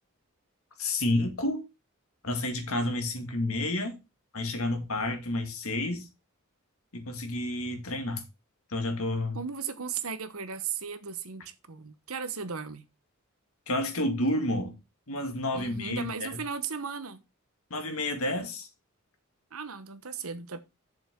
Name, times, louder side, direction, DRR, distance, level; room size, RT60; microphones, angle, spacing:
voice 1, 0.8-1.6 2.2-3.9 4.3-6.1 6.9-8.2 8.7-9.4 13.7-14.7 15.1-16.4 17.7-18.7, left 1 dB, 80° left, 2.2 m, -30 dB
voice 2, 9.3-12.9 15.5-17.2 19.5-20.6, right 6 dB, 85° right, 1.1 m, -36 dB
8.4 x 6.9 x 3.8 m
head